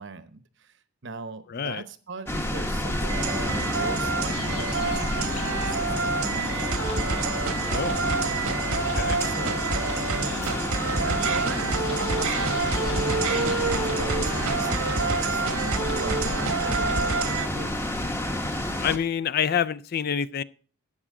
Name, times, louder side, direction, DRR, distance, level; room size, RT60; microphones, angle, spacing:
voice 1, 0.0-6.7 8.8-9.7 10.1-10.5 10.8-17.8, right 3 dB, 55° right, 0.9 m, -39 dB
voice 2, 1.5-1.8 7.6-8.0 8.7-9.2 18.8-20.4, left 8 dB, 45° left, 0.4 m, -27 dB
sound 1, 2.3-19.0, left 1 dB, 10° left, 0.9 m, -30 dB
sound 2, 3.1-17.5, right 4 dB, 85° right, 1.3 m, -28 dB
sound 3, 4.2-14.6, left 4 dB, 85° left, 0.7 m, -38 dB
12.0 x 8.7 x 3.7 m
head